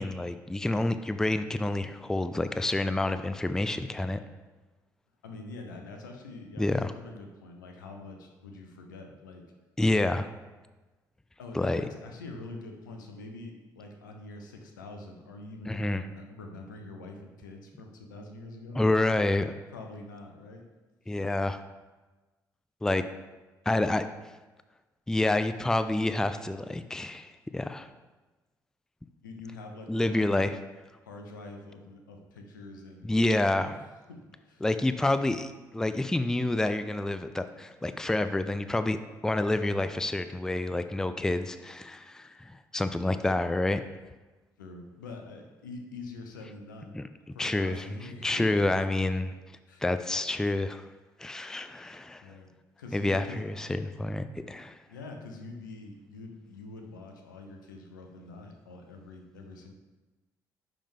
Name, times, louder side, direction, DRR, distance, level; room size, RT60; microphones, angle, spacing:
voice 1, 0.0-4.2 6.6-6.9 9.8-10.3 11.5-11.8 15.7-16.0 18.7-19.4 21.1-21.6 22.8-23.0 23.7-24.1 25.1-27.9 29.9-30.6 33.0-33.7 34.6-43.8 46.9-47.0 47.4-47.9 48.2-49.4 49.8-50.9 51.2-52.3 52.9-54.8, left 2 dB, 5° left, 10 dB, 0.4 m, -28 dB
voice 2, 5.2-9.4 11.4-19.3 19.7-20.6 21.1-21.2 29.2-30.5 31.0-33.2 33.7-33.8 34.1-34.6 44.6-47.0 47.3-48.6 49.7-49.8 52.2-52.5 52.8-53.4 54.9-59.7, left 2 dB, 80° left, 3 dB, 0.7 m, -45 dB
9.9 x 3.6 x 3.5 m, 1.2 s
figure-of-eight pair, 45°, 10 cm